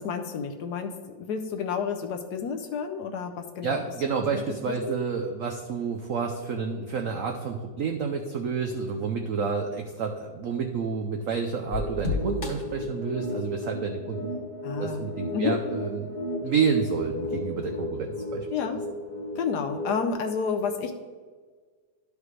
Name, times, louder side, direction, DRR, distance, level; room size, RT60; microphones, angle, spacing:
voice 1, 0.0-3.8 4.3-4.7 14.6-15.6 18.5-18.8 19.4-20.9, left 6 dB, 70° left, 5 dB, 1.1 m, -30 dB
voice 2, 3.6-14.4 14.8-16.1 16.4-18.5, right 5 dB, 75° right, 3 dB, 0.7 m, -29 dB
sound 1, 11.7-20.1, left 2 dB, 40° left, 1.5 m, -34 dB
12.5 x 5.0 x 3.2 m, 1.5 s
omnidirectional pair, 2.1 m